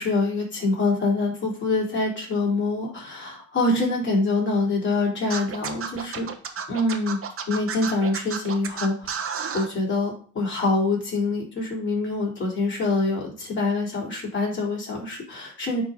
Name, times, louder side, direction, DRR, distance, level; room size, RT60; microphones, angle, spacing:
voice 1, 0.0-6.3 6.7-7.2 7.5-9.1 9.5-15.8, left 2 dB, 40° left, -3 dB, 3.9 m, -25 dB
Scratching (performance technique), 5.3-9.7, right 7 dB, 45° right, 1.2 m, -31 dB
9.7 x 3.9 x 3.9 m, 0.43 s
cardioid pair, 90°, 30 cm